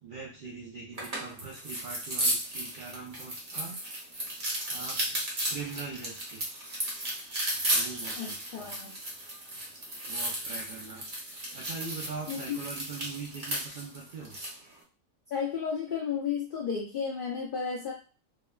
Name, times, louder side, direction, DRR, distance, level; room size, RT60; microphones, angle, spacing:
voice 1, 0.0-3.8 4.7-5.2 5.5-6.7 7.7-8.7 10.1-11.0 11.5-14.4, right 4 dB, 65° right, -3 dB, 0.5 m, -42 dB
sound 1, 0.9-14.6, right 1 dB, 45° right, 0.9 m, -34 dB
voice 2, 8.2-8.9 12.3-12.6 15.3-17.9, left 6 dB, 70° left, -2 dB, 0.5 m, -33 dB
2.9 x 2.1 x 2.2 m, 0.35 s
omnidirectional pair, 1.4 m